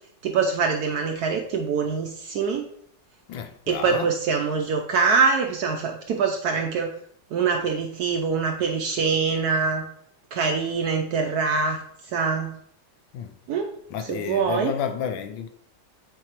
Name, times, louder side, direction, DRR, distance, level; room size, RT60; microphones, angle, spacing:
voice 1, 0.2-2.7 3.7-6.9 7.3-9.9 10.3-11.8 12.1-12.6 13.5-13.7 14.0-14.7, right 5 dB, 75° right, 0.9 m, -24 dB
voice 2, 3.3-4.1 13.1-13.3 13.9-15.5, left 8 dB, 80° left, 1.4 m, -31 dB
8.6 x 4.5 x 3.0 m
omnidirectional pair, 2.1 m